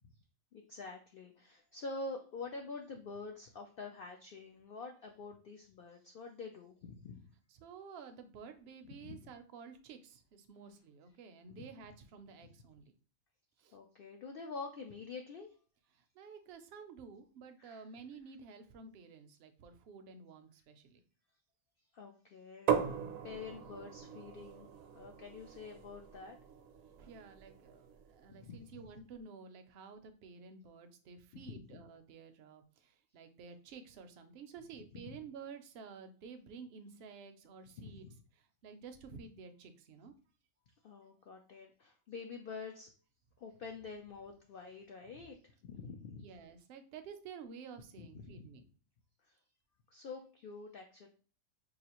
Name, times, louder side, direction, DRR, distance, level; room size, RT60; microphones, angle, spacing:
voice 1, 0.5-7.3 8.9-9.3 11.5-11.6 13.7-15.5 17.6-17.9 21.9-22.9 23.2-24.7 24.9-26.4 28.3-28.9 31.3-31.8 34.9-35.2 37.8-38.2 40.8-42.9 43.4-45.4 45.6-46.3 48.0-48.5 49.3-49.4 49.9-51.1, left 4 dB, 65° left, 3 dB, 0.5 m, -47 dB
voice 2, 7.6-12.9 13.6-13.7 16.2-21.0 27.0-32.6 33.1-38.1 38.6-40.1 46.2-48.6, right 5 dB, 60° right, 7 dB, 0.7 m, -52 dB
sound 1, 22.7-28.3, right 8 dB, 75° right, 1.0 m, -39 dB
4.8 x 2.4 x 2.9 m, 0.40 s
omnidirectional pair, 1.4 m